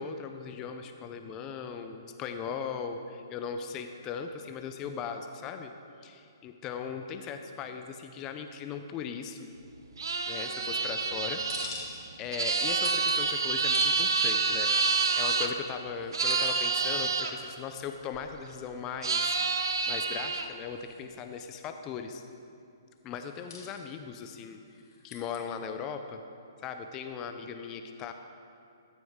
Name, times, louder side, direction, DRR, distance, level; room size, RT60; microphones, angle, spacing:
voice 1, 0.0-5.7 6.0-9.5 10.3-11.9 12.2-19.6 19.9-22.2 23.0-24.6 25.0-26.2 26.6-28.1, left 6 dB, 20° left, 6 dB, 0.6 m, -38 dB
sound 1, 10.0-15.5 16.1-17.3 19.0-20.5, right 4 dB, 80° right, 0.8 m, -28 dB
sound 2, 11.1-12.3 12.5-14.3 15.0-15.1 16.0-16.7 17.0-17.1 17.8-19.3 19.6-19.7 20.4-20.5 20.8-21.4 23.2-23.9 24.7-25.4, left 4 dB, 60° left, 2.3 m, -45 dB
14.5 x 9.1 x 3.7 m, 2.5 s
hypercardioid pair, 150°, 2 cm